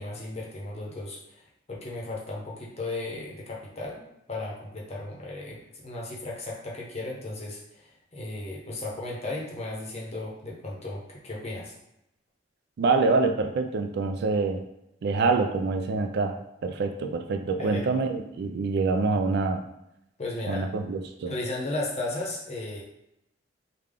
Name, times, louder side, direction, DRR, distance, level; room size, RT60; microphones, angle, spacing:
voice 1, 0.0-4.0 4.3-11.7 17.6-17.9 20.2-20.7 21.3-22.8, left 2 dB, 35° left, -3 dB, 0.8 m, -35 dB
voice 2, 12.8-14.6 15.0-19.6 20.5-21.3, right 3 dB, 60° right, 6 dB, 0.3 m, -26 dB
3.4 x 2.2 x 3.6 m, 0.83 s
head